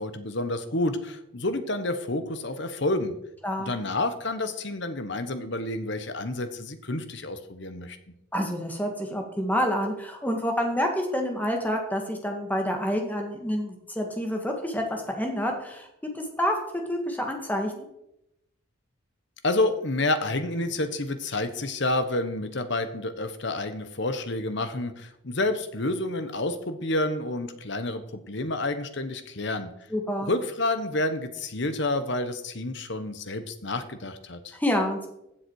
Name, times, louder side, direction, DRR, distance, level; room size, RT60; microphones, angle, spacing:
voice 1, 0.0-3.1 3.6-8.0 19.4-29.7 30.2-34.6, left 2 dB, 55° left, 10 dB, 1.1 m, -29 dB
voice 2, 8.3-15.9 16.1-17.9 29.9-30.3 34.5-35.1, equal, 10° left, 3 dB, 1.7 m, -28 dB
15.0 x 7.4 x 4.7 m, 0.82 s
head